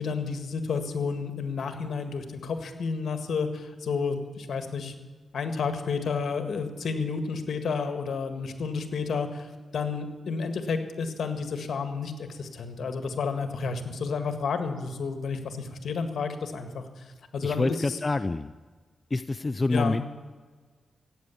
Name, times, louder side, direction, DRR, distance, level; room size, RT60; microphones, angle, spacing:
voice 1, 0.0-4.9 5.3-17.0 17.3-18.0 19.7-20.0, left 5 dB, 75° left, 7 dB, 1.7 m, -31 dB
voice 2, 17.4-18.5 19.1-20.0, left 3 dB, 30° left, 12 dB, 0.4 m, -27 dB
15.0 x 9.1 x 8.5 m, 1.4 s
cardioid pair, 70°, 0 cm